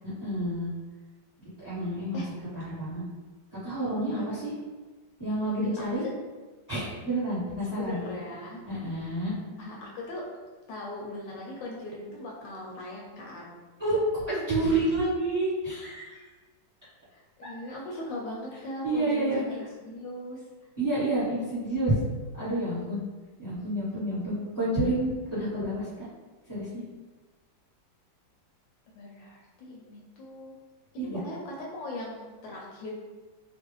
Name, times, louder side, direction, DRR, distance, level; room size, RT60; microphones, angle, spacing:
voice 1, 0.0-0.7 1.6-2.2 2.5-3.0 3.6-4.5 5.2-6.0 6.7-8.0 8.7-9.3 13.8-16.2 18.8-19.4 20.8-21.9 22.4-23.0 23.4-26.1 26.5-26.7 31.0-31.2, right 1 dB, 25° right, -13 dB, 1.3 m, -29 dB
voice 2, 4.0-4.4 5.6-6.1 7.6-8.6 9.0-9.1 9.6-10.3 10.7-13.6 17.1-20.4 29.0-30.5 30.9-32.9, left 1 dB, 75° left, -3 dB, 1.2 m, -39 dB
3.0 x 2.3 x 2.9 m, 1.3 s
omnidirectional pair, 2.0 m